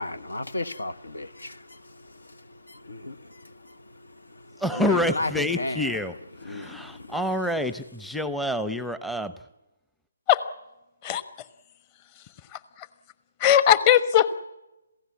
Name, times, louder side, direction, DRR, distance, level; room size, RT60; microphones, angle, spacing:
voice 1, 0.0-6.0 6.4-7.2, left 2 dB, 75° left, 1.2 m, -35 dB
voice 2, 4.6-6.1 6.5-9.3, left 1 dB, ahead, 0.7 m, -27 dB
voice 3, 12.5-12.9 13.4-14.3, left 10 dB, 25° left, 1.2 m, -19 dB
27.0 x 16.5 x 8.4 m
figure-of-eight pair, 140°, 0 cm